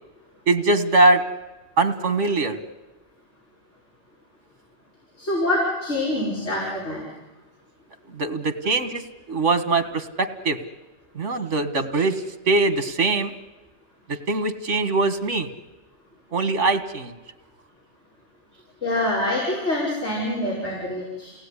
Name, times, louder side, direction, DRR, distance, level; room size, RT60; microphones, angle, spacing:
voice 1, 0.5-1.2 1.8-2.6 8.1-10.6 11.2-13.3 14.1-15.5 16.3-17.2, right 3 dB, 80° right, 9 dB, 2.0 m, -22 dB
voice 2, 5.2-7.0 18.8-21.3, left 1 dB, 70° left, -5 dB, 6.2 m, -25 dB
29.5 x 18.5 x 9.9 m, 1.1 s
omnidirectional pair, 1.2 m